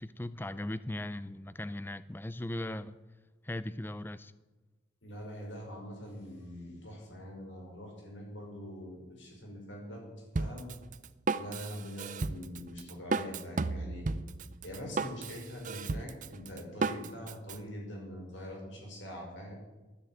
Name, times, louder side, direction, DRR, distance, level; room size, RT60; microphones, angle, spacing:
voice 1, 0.0-3.0 3.4-4.3, left 1 dB, 10° left, 15 dB, 0.4 m, -38 dB
voice 2, 5.0-10.7 11.4-14.1 14.6-19.6, equal, 80° left, 0 dB, 5.8 m, -43 dB
Drum kit, 10.4-17.6, right 3 dB, 40° right, 0.5 m, -34 dB
13.0 x 10.0 x 9.0 m, 1.2 s
head